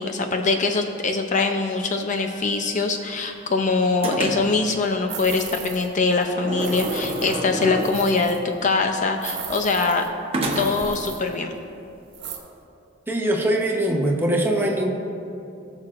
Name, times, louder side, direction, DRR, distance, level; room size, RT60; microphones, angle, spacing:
voice 1, 0.0-10.1 10.6-11.5, left 3 dB, 40° left, 5 dB, 0.5 m, -23 dB
sound 1, 2.1-3.6 4.0-4.7 6.2-8.3 10.3-11.0, right 1 dB, 30° right, 1.0 m, -30 dB
sound 2, 5.1-6.0 6.2-6.3 6.6-8.4 9.2-10.1 10.5-11.3 12.1-12.4, right 6 dB, 60° right, 1.2 m, -36 dB
voice 2, 13.1-14.9, right 1 dB, 10° right, 0 dB, 1.0 m, -22 dB
18.5 x 6.2 x 2.5 m, 2.6 s
head